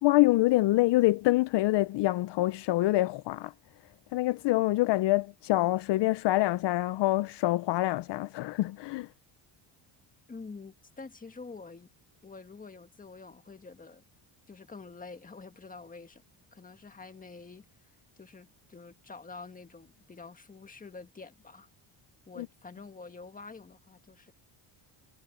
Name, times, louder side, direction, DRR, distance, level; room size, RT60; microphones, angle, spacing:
voice 1, 0.0-3.5 4.1-9.1 22.4-22.5, left 18 dB, 65° left, 0.6 m, -26 dB
voice 2, 10.3-11.9 12.2-14.0 14.5-16.2 16.5-17.7 18.2-21.7 22.3-24.3, left 4 dB, 15° left, 1.7 m, -47 dB
cardioid pair, 140°, 47 cm